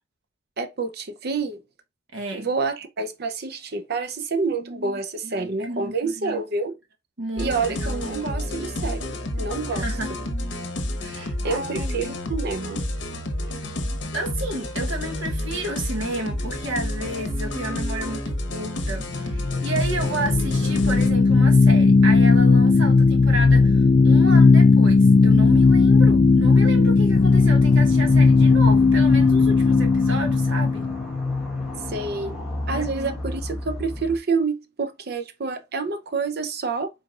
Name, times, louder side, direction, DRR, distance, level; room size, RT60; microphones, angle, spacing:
voice 1, 0.6-1.6 2.3-6.7 7.4-9.9 11.4-12.8 31.9-32.4 32.7-36.9, right 4 dB, 55° right, 0.7 m, -28 dB
voice 2, 2.1-2.5 4.6-6.4 7.2-8.2 9.7-10.1 11.0-12.2 13.5-13.6 14.1-30.9 32.7-33.2, right 2 dB, 80° right, 1.2 m, -32 dB
sound 1, 7.4-21.1, left 1 dB, 65° left, 1.0 m, -30 dB
sound 2, 19.0-32.2, left 4 dB, 40° left, 0.4 m, -16 dB
sound 3, 27.1-34.2, left 1 dB, 5° right, 1.4 m, -36 dB
4.7 x 4.1 x 2.5 m
head